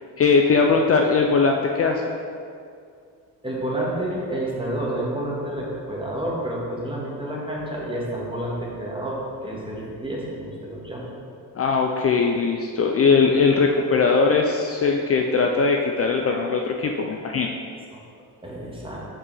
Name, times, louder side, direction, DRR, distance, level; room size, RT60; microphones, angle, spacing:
voice 1, 0.2-2.0 11.6-17.5, left 4 dB, 40° left, 2 dB, 0.5 m, -20 dB
voice 2, 3.4-11.1 18.4-19.1, right 1 dB, 15° right, -4 dB, 1.7 m, -29 dB
5.6 x 4.8 x 5.5 m, 2.3 s
cardioid pair, 90°, 38 cm